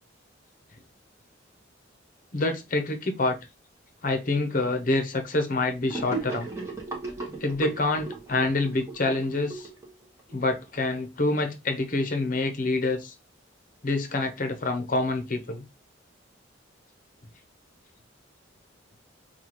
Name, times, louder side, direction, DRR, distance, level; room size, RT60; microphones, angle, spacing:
voice 1, 2.3-3.4 4.0-6.5 7.4-9.7 10.3-13.1 13.8-15.6, left 2 dB, 45° left, 0.8 m, -27 dB
Gurgling / Sink (filling or washing), 5.9-10.4, right 3 dB, 15° right, 1.0 m, -36 dB
5.5 x 2.3 x 3.0 m
head